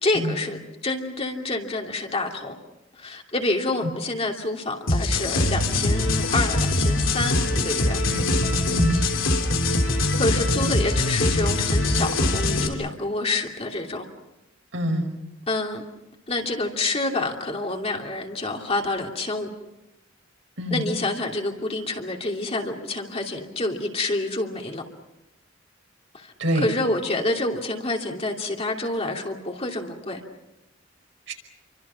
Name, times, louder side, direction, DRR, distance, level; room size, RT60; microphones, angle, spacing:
voice 1, 0.0-2.6 3.0-8.0 10.2-14.1 15.5-15.8 16.3-19.5 20.7-24.8 26.1-30.2, left 2 dB, 30° left, 1 dB, 2.9 m, -28 dB
sound 1, 4.9-12.7, left 2 dB, 85° left, 3.2 m, -22 dB
voice 2, 8.7-9.0 14.7-15.1 20.6-20.8 26.4-26.7 31.3-31.4, equal, 70° right, 3 dB, 5.5 m, -25 dB
29.5 x 25.0 x 5.8 m, 0.91 s
head